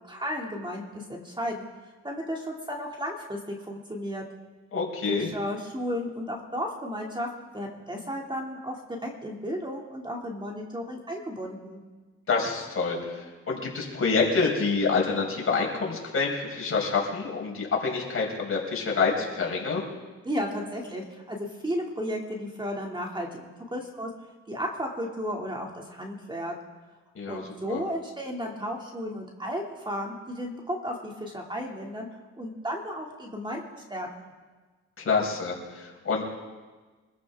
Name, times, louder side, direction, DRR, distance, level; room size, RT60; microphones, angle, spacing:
voice 1, 0.1-1.7 2.0-4.2 5.1-11.8 20.2-24.1 24.5-26.5 27.3-32.1 32.4-34.3, equal, 15° right, 0 dB, 2.4 m, -34 dB
voice 2, 4.7-5.3 12.3-19.9 27.1-27.4 27.7-27.8 35.0-36.2, left 4 dB, 50° left, -1 dB, 4.9 m, -27 dB
25.0 x 14.5 x 3.6 m, 1.3 s
cardioid pair, 85°, 29 cm